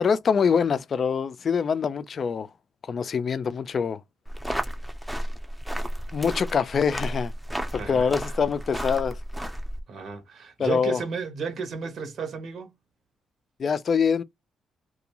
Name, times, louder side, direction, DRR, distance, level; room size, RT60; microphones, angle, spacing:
voice 1, 0.0-2.5 2.8-4.0 6.1-7.3 7.7-9.2 10.6-11.0 13.6-14.2, left 6 dB, 45° left, 0.3 m, -24 dB
sound 1, 4.3-9.8, equal, 5° right, 0.6 m, -32 dB
voice 2, 7.8-8.3 9.9-12.7, right 5 dB, 60° right, 0.9 m, -33 dB
2.5 x 2.3 x 2.9 m
cardioid pair, 90°, 0 cm